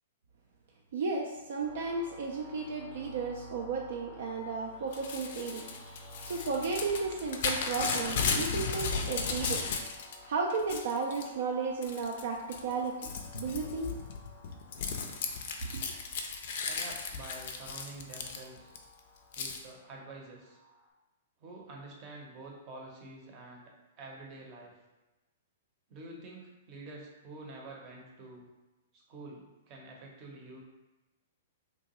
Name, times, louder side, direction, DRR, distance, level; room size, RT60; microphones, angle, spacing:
voice 1, 0.9-5.7 6.2-9.6 10.3-13.9 15.6-15.8, right 4 dB, 65° right, 0 dB, 0.3 m, -34 dB
sound 1, 1.6-20.9, left 2 dB, 10° left, 0.7 m, -53 dB
Crumpling crinkling / Tearing, 4.9-10.2 10.5-11.3 11.8-12.2 12.5-18.8 19.3-19.6, left 5 dB, 55° left, 0.4 m, -35 dB
voice 2, 16.7-18.7 19.3-20.6 21.4-24.7 25.9-28.5 28.9-30.6, right 2 dB, 40° right, -1 dB, 0.7 m, -48 dB
2.8 x 2.2 x 3.0 m, 1.1 s
hypercardioid pair, 115°, 0 cm